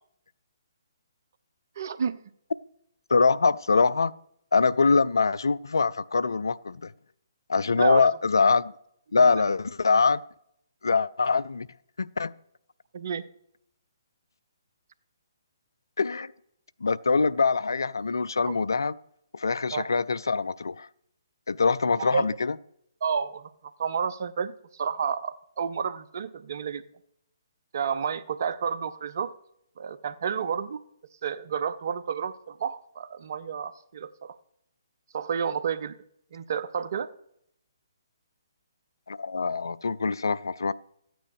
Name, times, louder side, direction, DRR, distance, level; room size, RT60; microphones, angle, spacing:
voice 1, 1.8-2.2 7.8-8.1 12.9-13.2 18.5-18.6 19.7-19.9 22.0-22.3 23.0-23.5 23.8-26.8 27.7-29.3 29.8-30.8 31.2-34.3 35.1-36.0 36.3-37.1, right 7 dB, 50° right, 0.8 m, -30 dB
voice 2, 3.1-4.1 4.5-6.9 7.5-8.7 9.1-10.2 10.8-11.7 12.0-12.3 16.0-16.3 16.8-18.9 19.3-20.9 21.5-22.5 39.1-40.7, left 4 dB, 70° left, 0.4 m, -23 dB
14.0 x 9.1 x 4.9 m
figure-of-eight pair, 130°, 2 cm